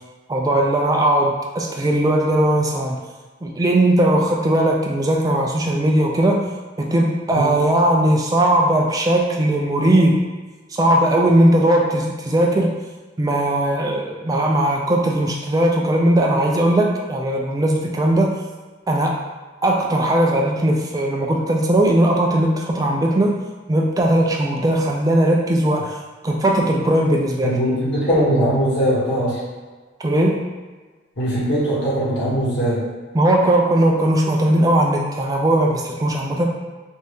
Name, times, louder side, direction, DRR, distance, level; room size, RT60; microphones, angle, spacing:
voice 1, 0.3-3.0 3.4-6.4 6.8-10.2 10.7-12.7 13.2-18.3 18.9-19.2 19.6-23.4 23.7-27.6 30.0-30.4 33.1-36.5, right 1 dB, 20° right, 0 dB, 0.3 m, -18 dB
voice 2, 27.4-29.4 31.2-32.8, equal, 65° left, -9 dB, 1.2 m, -20 dB
2.6 x 2.3 x 3.4 m, 1.4 s
head